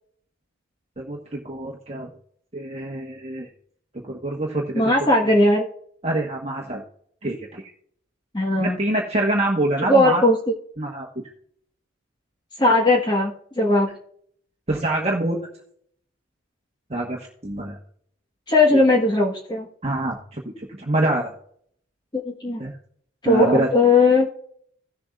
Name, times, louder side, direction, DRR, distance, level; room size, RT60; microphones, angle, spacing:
voice 1, 1.0-2.1 2.5-3.5 4.0-4.8 6.0-6.8 7.2-7.6 8.6-10.2 10.8-11.1 14.7-15.4 16.9-17.8 19.8-21.3 22.6-22.7 23.2-23.7, right 1 dB, 30° right, -1 dB, 1.2 m, -25 dB
voice 2, 4.7-5.7 8.3-8.8 9.9-10.4 12.6-13.9 18.5-19.7 22.1-22.6 23.2-24.3, left 2 dB, 20° left, 0 dB, 1.3 m, -18 dB
17.0 x 7.1 x 2.4 m, 0.63 s
head